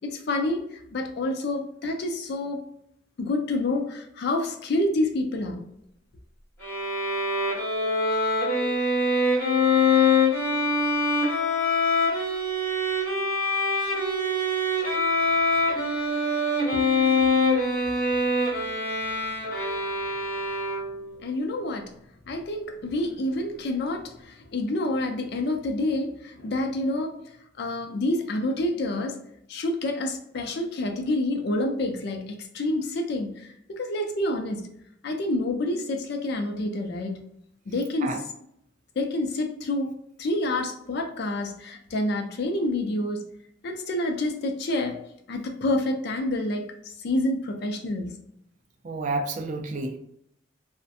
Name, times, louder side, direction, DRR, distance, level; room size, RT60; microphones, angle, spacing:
voice 1, 0.0-2.7 3.2-5.7 16.7-16.8 21.2-21.9 22.3-27.2 27.6-29.2 29.5-34.7 35.0-37.2 37.7-38.3 39.0-39.9 40.2-43.2 43.6-45.0 45.3-48.2, left 1 dB, 60° left, 4 dB, 0.4 m, -28 dB
Bowed string instrument, 6.6-21.1, left 2 dB, 10° left, 1.0 m, -24 dB
voice 2, 48.8-50.0, right 2 dB, 40° right, 5 dB, 0.4 m, -30 dB
2.5 x 2.1 x 2.6 m, 0.74 s
head